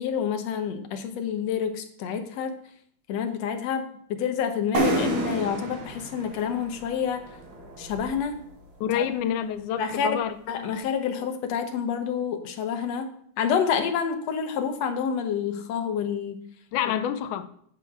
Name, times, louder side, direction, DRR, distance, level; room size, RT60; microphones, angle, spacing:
voice 1, 0.0-2.6 3.1-7.3 7.8-8.4 8.9-9.0 9.8-10.1 10.5-13.1 13.4-16.4, left 7 dB, 70° left, 7 dB, 1.9 m, -28 dB
sound 1, 4.7-8.4, right 2 dB, 65° right, 2.7 m, -30 dB
voice 2, 8.8-10.4 16.7-17.5, left 9 dB, 85° left, 9 dB, 2.1 m, -27 dB
8.2 x 7.5 x 4.7 m, 0.65 s
omnidirectional pair, 3.4 m